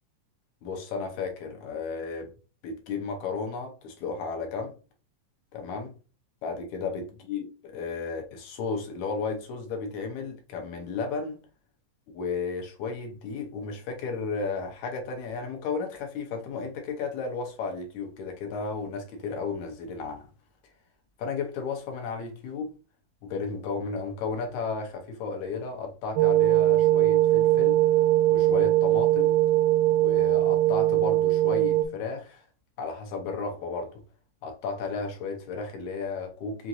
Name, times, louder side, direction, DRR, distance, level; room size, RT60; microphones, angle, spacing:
voice 1, 0.6-2.3 2.6-4.7 5.5-5.9 6.4-11.4 12.1-20.3 21.2-22.8 23.2-27.8 28.3-29.4 29.9-32.4 32.8-34.0 34.4-36.7, left 4 dB, 75° left, 2.0 m, -33 dB
sound 1, 26.2-31.9, right 14 dB, 85° right, 2.2 m, -21 dB
5.8 x 2.5 x 2.6 m
omnidirectional pair, 3.8 m